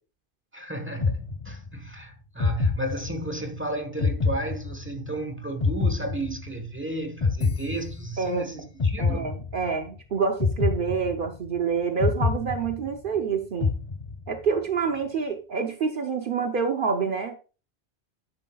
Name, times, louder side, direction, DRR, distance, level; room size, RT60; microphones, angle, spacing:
voice 1, 0.5-9.3, right 2 dB, 10° right, 1.2 m, -33 dB
sound 1, 1.0-1.9 2.4-3.5 4.0-5.2 5.6-6.8 7.2-8.4 8.8-9.9 10.4-11.6 12.0-13.2 13.6-14.5, left 4 dB, 35° left, 0.5 m, -27 dB
voice 2, 8.2-8.7 9.0-13.7 14.3-17.4, right 5 dB, 55° right, 0.9 m, -27 dB
10.0 x 7.5 x 2.3 m
omnidirectional pair, 1.1 m